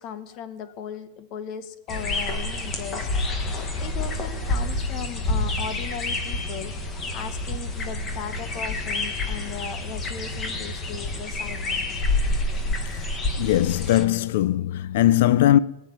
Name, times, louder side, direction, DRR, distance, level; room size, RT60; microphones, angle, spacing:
voice 1, 0.0-3.1 3.8-6.7 7.1-12.0, left 8 dB, 35° left, 1.2 m, -37 dB
sound 1, 1.9-14.0, left 2 dB, 20° left, 1.6 m, -28 dB
voice 2, 13.4-15.6, left 13 dB, 60° left, 0.5 m, -20 dB
19.0 x 7.5 x 9.2 m
supercardioid pair, 170°, 0 cm